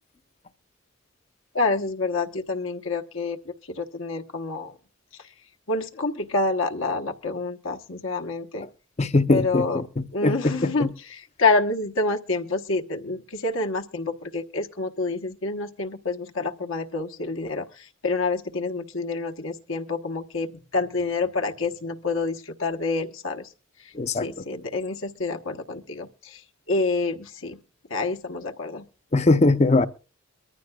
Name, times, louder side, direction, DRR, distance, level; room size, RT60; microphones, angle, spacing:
voice 1, 1.5-4.7 5.7-8.7 9.3-9.8 10.1-17.6 18.0-23.5 24.2-26.4 26.7-27.6 27.9-28.8, left 3 dB, 70° left, 1.1 m, -27 dB
voice 2, 9.0-10.9 24.0-24.2 29.1-29.9, left 2 dB, 30° left, 0.6 m, -21 dB
23.0 x 14.5 x 2.3 m
head